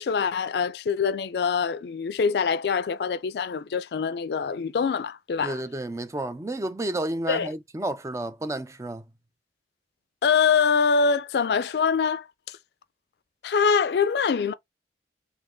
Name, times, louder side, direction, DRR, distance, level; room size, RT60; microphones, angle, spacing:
voice 1, 0.0-5.6 7.3-7.5 10.2-12.6 13.4-14.5, left 6 dB, 70° left, 0.4 m, -24 dB
voice 2, 5.4-9.0, right 1 dB, 15° right, 0.3 m, -31 dB
2.9 x 2.6 x 3.5 m
head